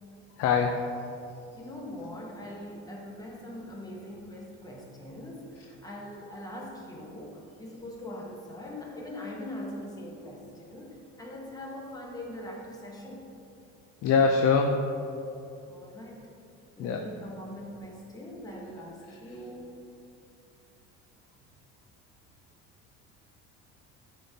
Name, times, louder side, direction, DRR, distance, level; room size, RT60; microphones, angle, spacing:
voice 1, 0.4-1.1 14.0-14.9 16.8-17.0 19.1-19.4, left 5 dB, 60° left, 3 dB, 0.5 m, -24 dB
voice 2, 1.5-13.3 15.7-16.2 16.8-19.8, left 1 dB, 10° left, -2 dB, 0.9 m, -42 dB
10.0 x 3.7 x 2.7 m, 2.7 s
cardioid pair, 135°, 29 cm